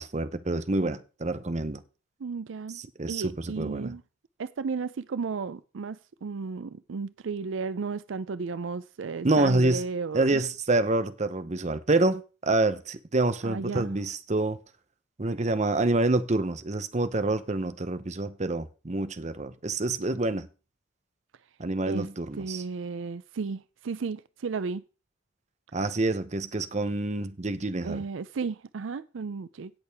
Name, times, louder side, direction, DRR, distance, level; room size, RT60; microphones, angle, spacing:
voice 1, 0.0-1.8 2.7-3.9 9.2-9.8 10.1-14.6 15.2-20.5 21.6-22.6 25.7-28.0, right 2 dB, 35° right, 0.8 m, -27 dB
voice 2, 2.2-2.8 3.1-4.0 4.4-10.4 13.4-13.9 21.9-22.1 22.4-24.8 27.8-29.7, right 4 dB, 75° right, 0.5 m, -34 dB
17.0 x 6.5 x 3.5 m
head